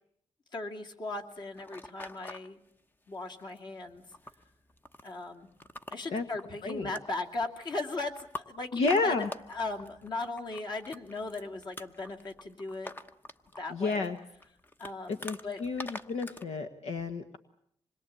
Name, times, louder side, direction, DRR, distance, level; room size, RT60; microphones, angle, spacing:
voice 1, 0.5-2.6 3.1-4.0 5.0-5.5 5.9-12.9 13.6-14.1 14.8-15.6, left 2 dB, 40° left, 2 dB, 2.7 m, -38 dB
sound 1, 1.1-2.5 3.1-3.6 3.8-16.4, left 2 dB, 15° left, 1.0 m, -46 dB
voice 2, 6.6-7.0 8.7-9.3 13.7-14.2 15.1-17.4, left 3 dB, 70° left, 6 dB, 1.6 m, -31 dB
26.5 x 21.5 x 8.6 m, 0.69 s
cardioid pair, 125°, 11 cm